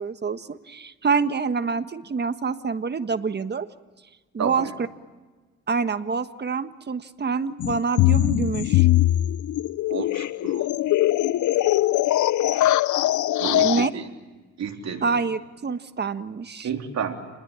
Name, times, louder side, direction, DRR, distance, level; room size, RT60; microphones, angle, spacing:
voice 1, 0.0-3.7 4.3-4.7 5.7-8.9 13.6-13.9 15.0-16.7, right 5 dB, 35° right, 11 dB, 1.5 m, -26 dB
voice 2, 4.4-4.7 9.9-10.7 13.4-14.1 14.6-15.2 16.6-17.2, right 7 dB, 60° right, 3 dB, 3.7 m, -30 dB
sound 1, 7.6-13.9, left 14 dB, 75° left, 0.8 m, -21 dB
30.0 x 20.5 x 8.9 m, 1.3 s
cardioid pair, 90°, 30 cm